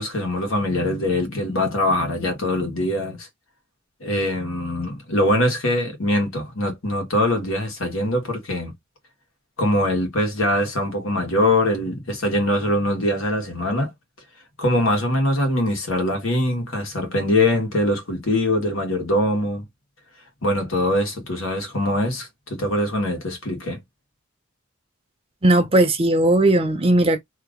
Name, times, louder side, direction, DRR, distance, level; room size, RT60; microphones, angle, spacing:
voice 1, 0.0-3.3 4.0-8.7 9.6-13.9 14.6-19.6 20.4-23.8, left 1 dB, 80° left, 1.4 m, -22 dB
voice 2, 25.4-27.2, right 1 dB, 30° right, 0.7 m, -17 dB
2.9 x 2.5 x 3.6 m
head